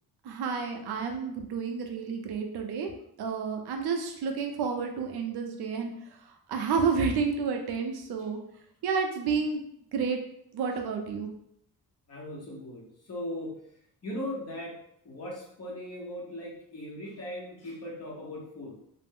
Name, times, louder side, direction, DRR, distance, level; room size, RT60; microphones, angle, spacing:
voice 1, 0.2-2.9 3.2-5.9 6.5-8.4 8.8-9.6 9.9-10.2 10.5-11.3, right 5 dB, 80° right, 4 dB, 0.6 m, -30 dB
voice 2, 12.1-13.6 14.0-14.8 15.0-18.8, left 1 dB, 40° left, -4 dB, 0.9 m, -38 dB
2.4 x 2.0 x 3.5 m, 0.71 s
cardioid pair, 135°, 38 cm